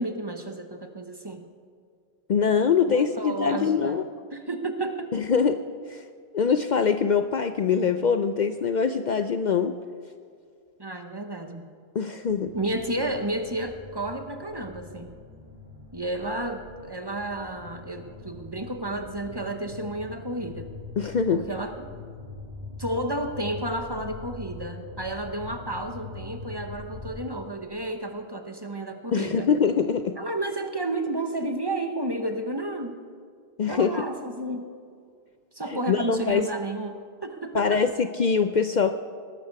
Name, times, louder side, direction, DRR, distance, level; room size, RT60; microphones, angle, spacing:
voice 1, 0.0-1.4 2.9-4.0 4.3-5.1 10.8-11.7 12.5-15.2 15.9-20.7 21.3-22.0 22.8-29.5 30.2-33.0 33.7-34.8 35.5-37.8, right 1 dB, 25° right, 6 dB, 0.9 m, -32 dB
voice 2, 2.3-4.1 5.1-5.6 5.9-6.0 6.3-9.7 11.9-12.5 21.0-21.5 29.1-30.2 33.6-34.0 35.7-36.5 37.5-38.9, left 6 dB, 55° left, 9 dB, 0.6 m, -23 dB
sound 1, 12.3-27.1, left 3 dB, 40° right, 2.4 m, -43 dB
19.5 x 12.0 x 4.7 m, 2.2 s
omnidirectional pair, 1.1 m